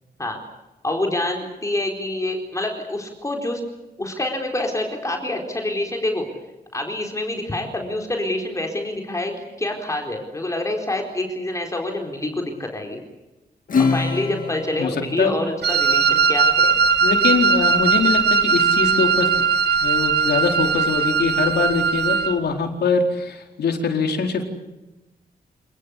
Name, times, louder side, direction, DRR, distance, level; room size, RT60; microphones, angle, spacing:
voice 1, 0.8-3.6 4.0-6.3 6.7-13.0 13.8-16.7, left 1 dB, 20° left, 2 dB, 4.3 m, -26 dB
Acoustic guitar / Strum, 13.7-16.6, left 5 dB, 55° left, 1.9 m, -26 dB
voice 2, 14.8-15.3 17.0-19.3 19.8-24.4, left 4 dB, 85° left, 3 dB, 4.4 m, -23 dB
Wind instrument woodwind instrument, 15.6-22.4, right 5 dB, 80° right, 1.5 m, -19 dB
28.0 x 20.0 x 8.5 m, 1.0 s
wide cardioid pair, 135°, 17 cm